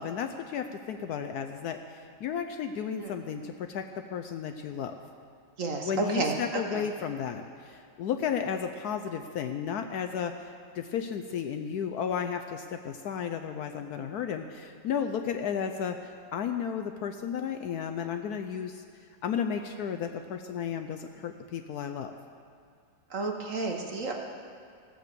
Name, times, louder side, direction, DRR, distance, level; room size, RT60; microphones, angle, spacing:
voice 1, 0.0-4.9 5.8-10.5 10.7-18.8 19.2-22.1, left 7 dB, 70° left, 6 dB, 1.0 m, -33 dB
voice 2, 5.6-6.8 23.1-24.1, right 3 dB, 50° right, 2 dB, 1.2 m, -31 dB
15.0 x 7.8 x 6.7 m, 2.3 s
omnidirectional pair, 2.0 m